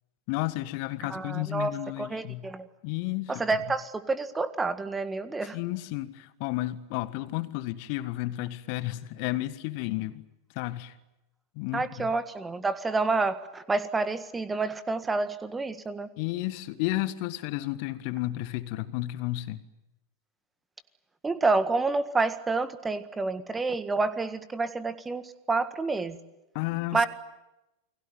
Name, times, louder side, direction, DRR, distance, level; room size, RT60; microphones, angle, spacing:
voice 1, 0.3-2.5 2.8-3.4 5.4-10.2 10.6-10.9 11.6-12.1 16.2-19.6 26.6-27.1, left 17 dB, 45° left, 1.6 m, -32 dB
voice 2, 1.0-1.7 2.0-2.7 3.3-5.6 11.7-16.1 21.2-25.2 25.5-26.2 26.9-27.1, right 3 dB, 15° right, 1.7 m, -28 dB
29.5 x 21.0 x 9.4 m
figure-of-eight pair, 90°, 0 cm